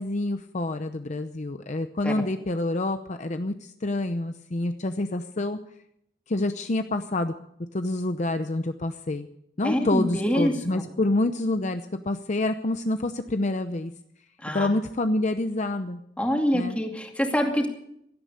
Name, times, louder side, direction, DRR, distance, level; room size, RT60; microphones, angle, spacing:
voice 1, 0.0-5.6 6.3-7.3 7.7-9.3 9.6-13.9 14.5-16.0 16.5-16.8, left 2 dB, 40° left, 8 dB, 0.7 m, -27 dB
voice 2, 9.6-10.8 14.4-14.7 16.2-17.7, equal, 5° left, 2 dB, 2.5 m, -25 dB
17.0 x 13.0 x 6.7 m, 0.74 s
head